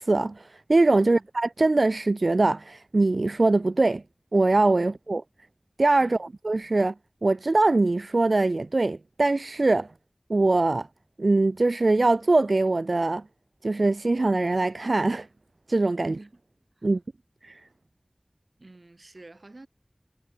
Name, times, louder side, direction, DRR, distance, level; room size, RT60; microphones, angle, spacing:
voice 1, 0.0-4.0 4.3-5.2 5.8-6.9 7.2-9.9 10.3-10.9 11.2-13.2 13.6-15.3 15.7-16.2 16.8-17.0 17.4-17.6, right 2 dB, 90° right, 0.5 m, -22 dB
voice 2, 16.0-16.4 16.8-16.9 18.6-19.7, right 2 dB, 70° right, 5.3 m, -47 dB
wide cardioid pair, 45°, 0 cm